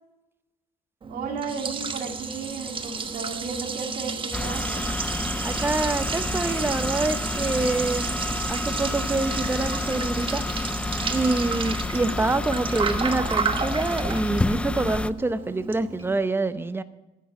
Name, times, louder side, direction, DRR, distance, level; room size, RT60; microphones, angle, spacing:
Liquid, 1.0-16.2, right 5 dB, 30° right, 1.1 m, -32 dB
voice 1, 1.1-4.9 11.8-12.1, right 5 dB, 65° right, -3 dB, 2.6 m, -34 dB
sound 1, 4.3-15.1, left 2 dB, 5° left, 0.3 m, -29 dB
voice 2, 5.4-8.2 8.5-10.7 11.1-16.8, right 2 dB, 15° right, 12 dB, 0.7 m, -26 dB
10.0 x 8.1 x 8.5 m, 1.1 s
cardioid pair, 110°, 17 cm